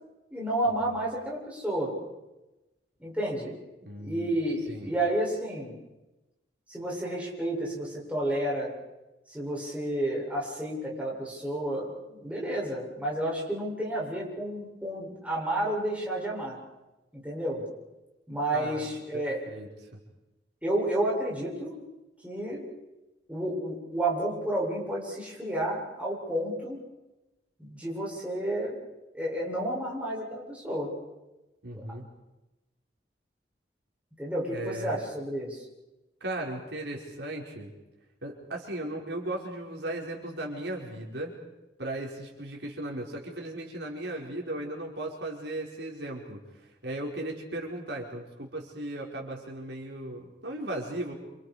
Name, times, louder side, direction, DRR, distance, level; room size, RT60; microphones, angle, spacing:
voice 1, 0.3-2.0 3.0-3.5 4.0-5.7 6.7-8.7 9.3-16.6 17.1-17.6 18.3-19.4 20.6-21.7 22.2-22.6 23.3-26.8 27.6-28.8 29.1-30.9 34.2-35.6, right 1 dB, 5° right, -5 dB, 8.0 m, -31 dB
voice 2, 3.8-4.4 4.7-4.9 18.5-18.9 19.1-19.7 31.6-32.1 34.5-35.0 36.2-37.7 38.2-41.3 41.8-51.1, right 1 dB, 70° right, -1 dB, 4.9 m, -36 dB
28.5 x 28.0 x 5.1 m, 1.0 s
head